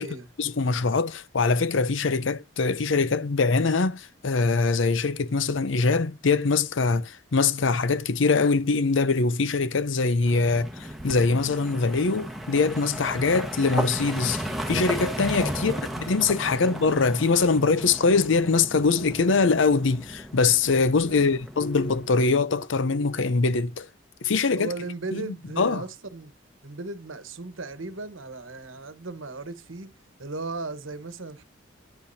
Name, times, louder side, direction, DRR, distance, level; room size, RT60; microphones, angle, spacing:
voice 1, 0.4-15.7 16.1-23.9 24.2-24.7 25.1-25.3 25.6-25.8, left 4 dB, 70° left, 0.6 m, -23 dB
sound 1, 10.2-22.1, equal, ahead, 1.3 m, -35 dB
voice 2, 15.5-15.8 16.5-16.8 21.1-21.4 24.6-26.3 26.6-29.9 30.2-31.4, right 3 dB, 80° right, 1.2 m, -37 dB
10.0 x 8.6 x 2.7 m
head